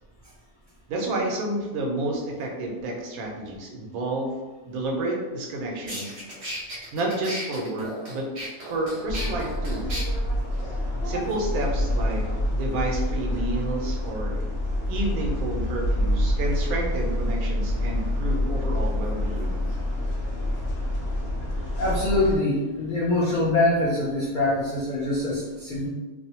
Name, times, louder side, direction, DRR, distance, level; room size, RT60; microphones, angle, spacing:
voice 1, 0.9-4.3 4.7-6.1 6.9-8.3 8.7-9.9 11.0-14.4 14.9-19.6, right 2 dB, 85° right, 0 dB, 1.1 m, -30 dB
sound 1, 5.4-5.5 5.9-10.0, equal, 45° right, 0.7 m, -35 dB
sound 2, 9.1-22.4, left 1 dB, 65° left, 0.8 m, -27 dB
voice 2, 21.8-25.9, left 2 dB, 80° left, -6 dB, 0.4 m, -24 dB
2.6 x 2.0 x 2.8 m, 1.2 s
omnidirectional pair, 1.5 m